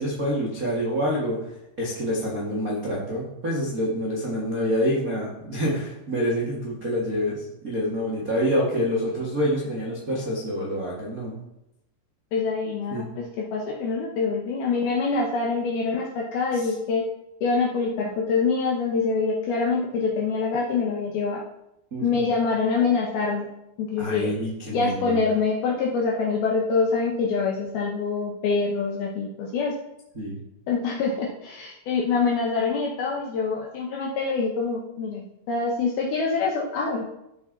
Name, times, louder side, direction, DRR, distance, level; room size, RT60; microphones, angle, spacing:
voice 1, 0.0-1.4 1.8-11.3 12.9-13.0 21.9-22.2 24.0-25.2 30.1-30.4, equal, 60° right, -6 dB, 0.9 m, -27 dB
voice 2, 12.3-17.0 17.4-21.4 22.0-23.5 23.8-24.3 24.7-29.8 30.7-37.1, left 4 dB, 75° left, -1 dB, 2.4 m, -25 dB
13.5 x 6.6 x 4.0 m, 0.85 s
omnidirectional pair, 5.7 m